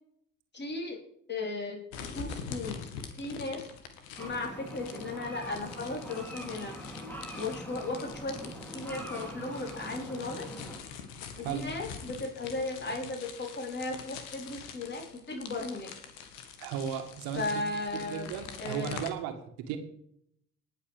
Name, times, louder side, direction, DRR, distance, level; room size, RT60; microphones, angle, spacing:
voice 1, 0.5-1.0 1.3-1.8 2.1-2.9 3.2-3.7 4.2-6.7 7.4-10.6 11.4-15.9 17.3-18.3 18.6-19.0, left 2 dB, 30° left, 1 dB, 4.3 m, -36 dB
sound 1, 1.9-19.1, left 6 dB, 75° left, 1.9 m, -45 dB
sound 2, 4.2-10.8, equal, 5° left, 3.2 m, -43 dB
voice 2, 16.6-17.5 17.9-19.8, right 8 dB, 70° right, 7 dB, 2.1 m, -35 dB
19.5 x 6.6 x 5.0 m, 0.69 s
hypercardioid pair, 55°, 37 cm